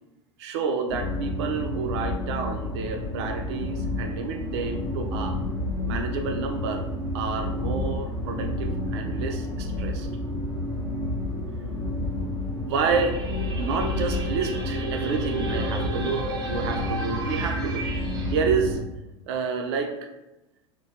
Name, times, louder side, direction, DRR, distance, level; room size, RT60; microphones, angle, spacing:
voice 1, 0.4-5.4 5.8-6.9 7.1-10.1 12.6-13.2 13.6-18.8 19.3-20.1, right 5 dB, 65° right, 4 dB, 0.5 m, -29 dB
sound 1, 0.9-18.8, left 1 dB, 25° left, 0.7 m, -30 dB
sound 2, 12.8-18.3, right 2 dB, 25° right, 0.7 m, -34 dB
3.6 x 2.2 x 2.8 m, 0.96 s
hypercardioid pair, 85°, 15 cm